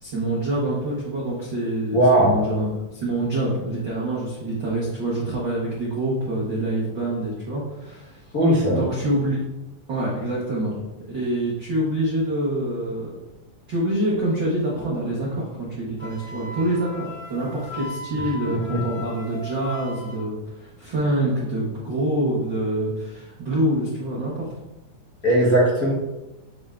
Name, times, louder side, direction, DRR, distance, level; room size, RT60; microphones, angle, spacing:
voice 1, 0.0-8.3 8.7-9.4 9.9-10.7 11.1-13.1 13.7-24.5, right 1 dB, 65° right, -7 dB, 1.1 m, -26 dB
voice 2, 1.9-2.4 8.3-8.8 25.2-25.9, right 1 dB, 85° left, -7 dB, 0.7 m, -17 dB
Wind instrument woodwind instrument, 16.0-20.2, left 2 dB, 25° left, 1.7 m, -37 dB
8.0 x 5.3 x 2.5 m, 1.0 s
omnidirectional pair, 4.0 m